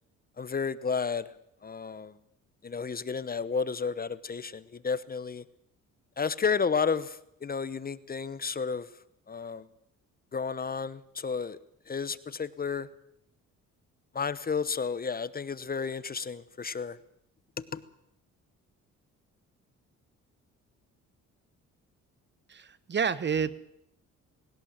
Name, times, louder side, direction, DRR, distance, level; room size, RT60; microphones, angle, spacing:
voice 1, 0.4-1.3 1.6-2.2 2.6-5.4 6.2-8.9 9.3-9.7 10.3-11.6 11.9-12.9 14.1-17.0 17.6-17.8, left 5 dB, 30° left, 16 dB, 1.0 m, -32 dB
voice 2, 22.5-23.6, right 6 dB, 35° right, 17 dB, 0.9 m, -29 dB
20.0 x 18.0 x 7.4 m, 0.75 s
cardioid pair, 90°, 30 cm